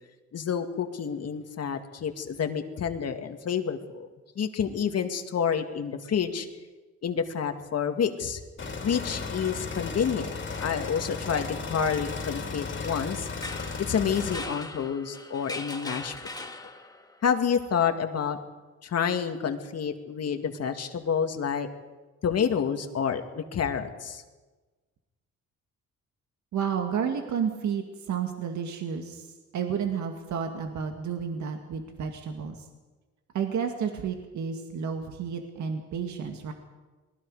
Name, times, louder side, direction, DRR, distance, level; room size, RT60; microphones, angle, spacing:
voice 1, 0.3-4.1 4.4-6.5 7.0-8.4 8.8-13.3 13.8-16.5 17.2-18.4 18.8-21.7 22.2-24.2, left 7 dB, 55° left, 6 dB, 2.2 m, -29 dB
sound 1, 8.6-14.4, left 4 dB, 40° left, 3.3 m, -35 dB
sound 2, 13.4-17.2, left 2 dB, 10° left, 1.8 m, -40 dB
voice 2, 26.5-32.6 33.3-36.5, right 7 dB, 70° right, 4 dB, 2.1 m, -31 dB
28.0 x 20.5 x 4.9 m, 1.3 s
cardioid pair, 90°, 30 cm